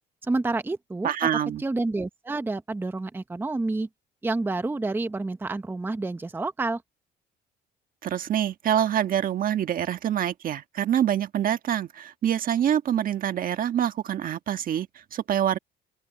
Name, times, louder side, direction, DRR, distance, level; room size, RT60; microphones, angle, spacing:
voice 1, 0.2-1.1 1.6-3.9 4.2-6.8, right 2 dB, 10° right, 0.7 m, -29 dB
voice 2, 1.0-1.6 8.0-15.6, right 10 dB, 55° right, 1.5 m, -26 dB
open air
cardioid pair, 105°, 18 cm